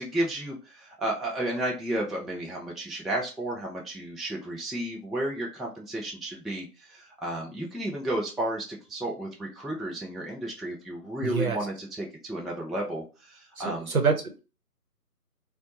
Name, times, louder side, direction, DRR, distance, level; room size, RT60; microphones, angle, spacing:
voice 1, 0.0-13.9, right 1 dB, ahead, -2 dB, 0.4 m, -32 dB
voice 2, 11.2-11.6 13.6-14.4, right 5 dB, 60° right, 4 dB, 0.7 m, -26 dB
2.6 x 2.1 x 2.8 m, 0.32 s
figure-of-eight pair, 180°, 48 cm